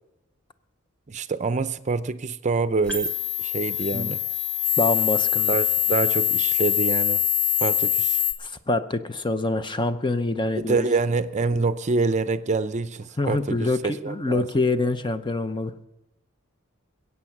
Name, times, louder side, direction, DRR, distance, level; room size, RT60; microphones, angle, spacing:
voice 1, 1.1-3.1 3.4-4.2 5.5-7.2 7.6-8.2 10.6-14.5, right 4 dB, 35° right, 0.6 m, -26 dB
sound 1, 2.9-8.3, left 10 dB, 5° left, 1.5 m, -24 dB
voice 2, 4.8-5.6 8.4-10.9 13.2-15.7, left 2 dB, 25° left, 0.7 m, -25 dB
21.0 x 8.5 x 5.9 m
head